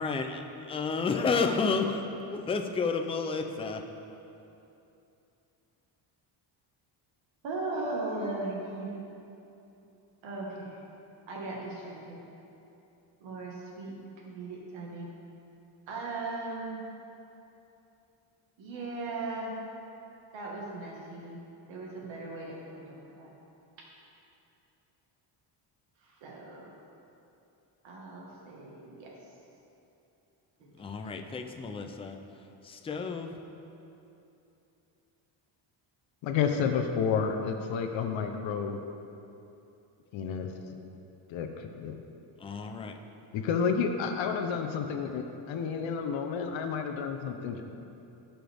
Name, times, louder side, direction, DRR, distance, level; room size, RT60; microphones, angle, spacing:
voice 1, 0.0-0.4 0.7-2.0 2.3-3.8 30.8-32.2 32.6-33.4 42.4-43.0, left 4 dB, 15° left, 4 dB, 0.4 m, -31 dB
voice 2, 7.4-9.0 10.2-10.8 11.3-12.2 13.2-13.9 14.3-15.1 15.9-16.8 18.6-19.5 20.3-21.4 21.7-23.3 26.2-26.7 27.8-29.1 30.6-30.7, right 2 dB, 75° right, -3 dB, 1.8 m, -38 dB
voice 3, 36.2-38.8 40.1-40.5 41.3-41.9 43.3-47.6, left 6 dB, 75° left, 4 dB, 0.9 m, -30 dB
17.5 x 6.1 x 3.5 m, 2.8 s
cardioid pair, 165°, 46 cm